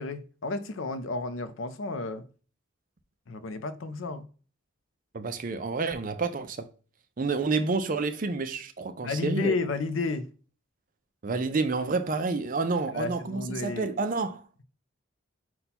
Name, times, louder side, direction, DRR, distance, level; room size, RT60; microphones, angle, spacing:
voice 1, 0.0-2.2 3.3-4.3 9.0-10.3 12.9-13.9, left 3 dB, 70° left, 0.5 m, -31 dB
voice 2, 5.1-6.7 7.2-9.6 11.2-14.6, right 4 dB, 40° right, 0.4 m, -29 dB
5.5 x 2.3 x 4.1 m
head